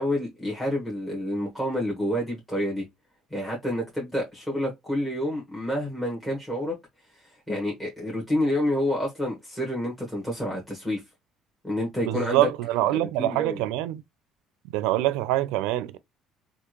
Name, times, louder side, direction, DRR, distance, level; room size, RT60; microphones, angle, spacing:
voice 1, 0.0-2.9 3.3-6.7 7.1-11.0 11.6-12.5 12.9-13.7, left 1 dB, 10° left, 1.5 m, -28 dB
voice 2, 12.1-14.0 14.7-16.0, right 15 dB, 90° right, 0.4 m, -25 dB
3.5 x 2.5 x 3.0 m
cardioid pair, 105°, 0 cm